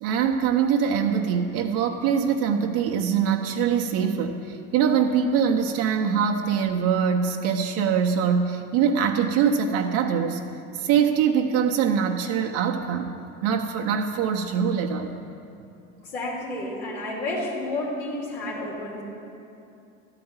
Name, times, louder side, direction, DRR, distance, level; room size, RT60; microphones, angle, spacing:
voice 1, 0.0-10.4 10.7-13.1 13.4-15.1, right 7 dB, 65° right, 3 dB, 0.8 m, -23 dB
voice 2, 16.1-19.0, left 2 dB, 80° left, -5 dB, 2.6 m, -30 dB
12.5 x 4.9 x 8.8 m, 2.6 s
hypercardioid pair, 65°, 36 cm